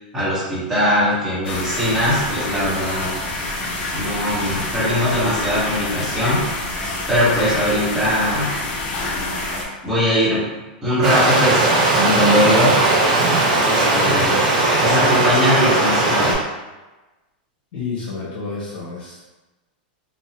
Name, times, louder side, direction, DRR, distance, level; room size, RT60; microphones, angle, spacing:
voice 1, 0.1-3.1 3.9-6.4 7.1-8.5 9.8-10.4 10.8-11.6 11.9-12.8 13.5-14.5 14.8-16.4, equal, 10° right, -9 dB, 1.0 m, -20 dB
sound 1, 1.4-9.6, left 2 dB, 25° left, 0.4 m, -27 dB
Stream, 11.0-16.3, right 2 dB, 65° right, 1.0 m, -17 dB
voice 2, 17.7-19.2, left 4 dB, 55° left, -6 dB, 0.9 m, -30 dB
2.7 x 2.1 x 2.8 m, 1.1 s
supercardioid pair, 165°, 5 cm